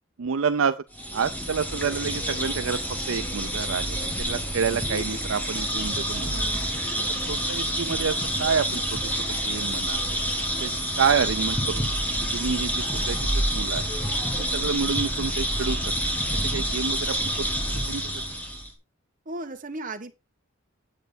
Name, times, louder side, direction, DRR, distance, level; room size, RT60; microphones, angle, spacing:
voice 1, 0.2-0.7 1.1-2.8 3.1-6.3 7.3-9.0 9.4-10.0 10.6-10.7 11.0-11.8 12.2-13.2 13.5-13.8 14.5-15.8 16.1-16.2 16.5-17.5 17.9-18.0, right 6 dB, 70° right, 0.5 m, -28 dB
sound 1, 0.9-18.7, equal, 10° left, 2.2 m, -28 dB
voice 2, 6.2-6.7 6.9-7.2 19.2-20.1, right 2 dB, 40° right, 1.5 m, -37 dB
9.1 x 7.9 x 4.0 m
head